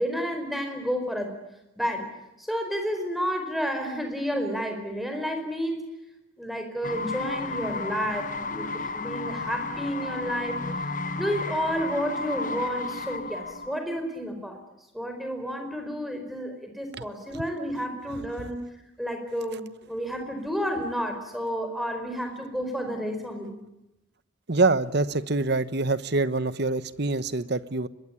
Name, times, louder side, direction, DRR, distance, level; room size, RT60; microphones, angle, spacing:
voice 1, 0.0-1.4 1.8-2.1 2.4-5.8 6.4-10.6 11.2-14.6 14.9-18.6 19.0-23.6, equal, ahead, 5 dB, 4.7 m, -31 dB
sound 1, 6.8-13.8, left 3 dB, 40° left, 1.2 m, -33 dB
voice 2, 24.5-27.9, right 3 dB, 55° right, 15 dB, 1.1 m, -25 dB
24.5 x 21.5 x 9.8 m, 0.90 s
head